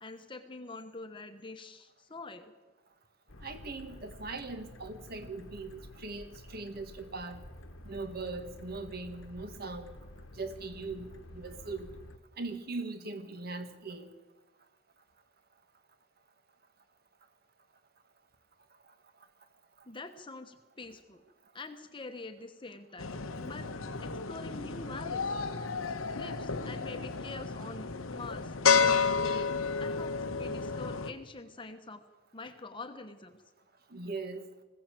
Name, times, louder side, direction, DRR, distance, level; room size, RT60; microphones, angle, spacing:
voice 1, 0.0-2.5 19.9-21.2 21.5-23.1 23.4-25.4 26.2-29.5 29.8-32.0 32.3-33.4, left 3 dB, 25° left, 7 dB, 1.1 m, -45 dB
sound 1, 3.3-12.2, left 1 dB, 70° left, 1.3 m, -50 dB
voice 2, 3.4-7.4 7.8-9.9 10.4-11.9 12.4-14.1 33.9-34.5, right 3 dB, 50° right, 8 dB, 1.7 m, -40 dB
sound 2, 23.0-31.1, left 5 dB, 90° left, 1.1 m, -31 dB
20.5 x 16.5 x 7.7 m, 1.2 s
head